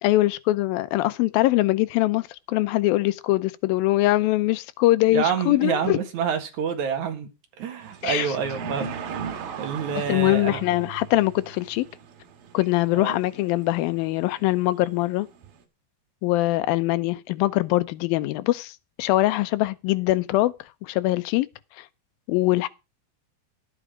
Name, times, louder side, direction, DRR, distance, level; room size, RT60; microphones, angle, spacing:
voice 1, 0.0-6.0 8.0-8.3 9.9-11.9 12.5-15.3 16.2-18.7 19.0-20.5 20.8-21.5 21.8-21.9 22.3-22.7, left 17 dB, 80° left, 2.4 m, -22 dB
voice 2, 5.1-7.3 7.6-8.9 9.3-10.6 12.9-13.2, right 7 dB, 55° right, 2.8 m, -27 dB
sound 1, 7.8-15.6, right 6 dB, 75° right, 3.5 m, -38 dB
12.0 x 8.8 x 4.8 m
omnidirectional pair, 4.3 m